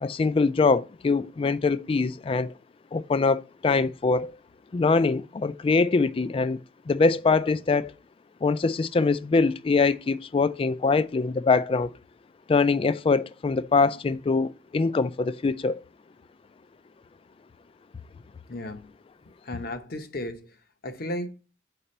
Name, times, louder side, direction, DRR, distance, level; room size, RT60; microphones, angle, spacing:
voice 1, 0.0-2.5 2.9-4.3 4.7-6.6 6.9-7.9 8.4-11.9 12.5-15.8, left 4 dB, 30° left, 0.3 m, -23 dB
voice 2, 18.5-18.9 19.4-20.5 20.8-21.3, left 1 dB, 60° left, 0.9 m, -34 dB
6.7 x 5.0 x 4.2 m
head